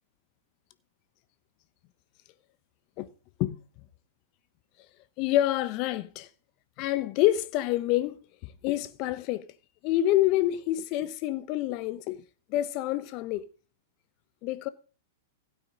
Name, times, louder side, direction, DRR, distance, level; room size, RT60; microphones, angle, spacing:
voice 1, 5.2-6.3 6.8-9.5 9.8-12.2 12.5-13.5 14.4-14.7, left 14 dB, 45° left, 1.0 m, -27 dB
16.0 x 8.9 x 3.9 m
hypercardioid pair, 105°, 0 cm